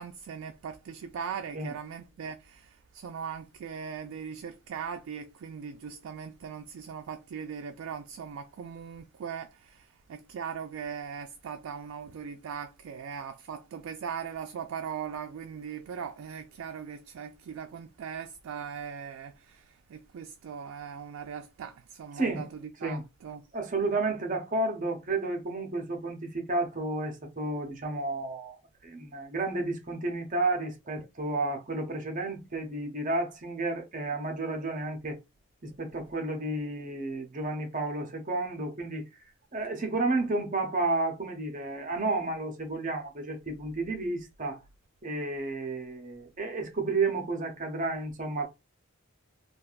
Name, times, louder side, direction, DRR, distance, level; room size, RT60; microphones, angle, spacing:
voice 1, 0.0-23.5, right 7 dB, 80° right, 0.3 m, -40 dB
voice 2, 22.2-22.5 22.8-23.0 23.5-28.6 28.8-35.2 35.6-39.0 39.5-44.6 45.0-48.5, right 2 dB, 40° right, 0.7 m, -31 dB
3.2 x 2.4 x 2.4 m
head